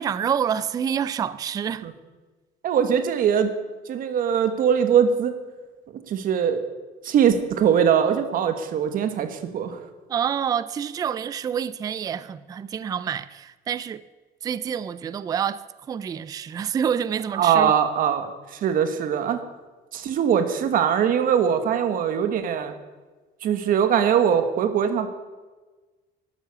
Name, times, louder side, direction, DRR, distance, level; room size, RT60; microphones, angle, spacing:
voice 1, 0.0-1.9 10.1-14.0 14.4-15.6 15.9-17.7, right 8 dB, 20° right, 0.3 m, -27 dB
voice 2, 2.6-3.5 3.9-5.3 6.1-6.6 7.0-9.8 17.3-19.4 19.9-22.7 23.4-25.1, right 8 dB, 45° right, 1.3 m, -21 dB
12.0 x 11.5 x 6.7 m
cardioid pair, 175°, 19 cm